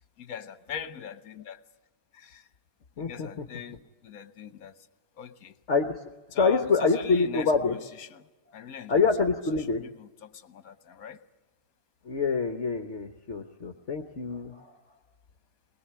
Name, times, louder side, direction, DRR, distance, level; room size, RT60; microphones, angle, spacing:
voice 1, 0.2-1.6 2.1-2.5 3.0-4.9 5.1-5.6 6.3-9.1 9.8-11.2, left 8 dB, 70° left, 1.5 m, -41 dB
voice 2, 3.0-3.4 5.7-6.0 6.3-7.8 8.9-9.8 12.0-14.7, left 4 dB, 50° left, 1.4 m, -26 dB
22.0 x 20.5 x 8.7 m
omnidirectional pair, 1.6 m